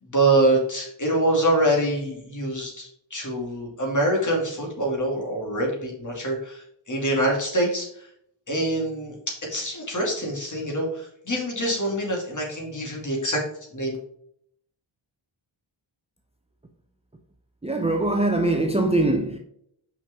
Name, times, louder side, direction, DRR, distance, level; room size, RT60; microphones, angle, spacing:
voice 1, 0.1-8.1 8.5-13.4 13.7-14.0, right 1 dB, 40° left, 2.5 m, -25 dB
voice 2, 17.6-19.4, right 2 dB, 15° right, 0.6 m, -22 dB
5.8 x 5.6 x 3.6 m
wide cardioid pair, 135°, 48 cm